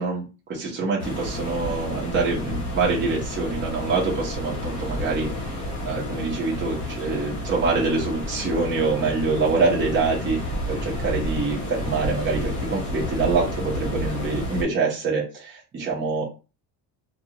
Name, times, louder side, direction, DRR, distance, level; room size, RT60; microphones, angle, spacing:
voice 1, 0.0-5.6 5.9-16.3, right 4 dB, 30° right, -4 dB, 0.9 m, -25 dB
sound 1, 1.0-14.6, left 1 dB, 45° left, 1.1 m, -30 dB
2.4 x 2.3 x 2.9 m, 0.31 s
cardioid pair, 160°, 40 cm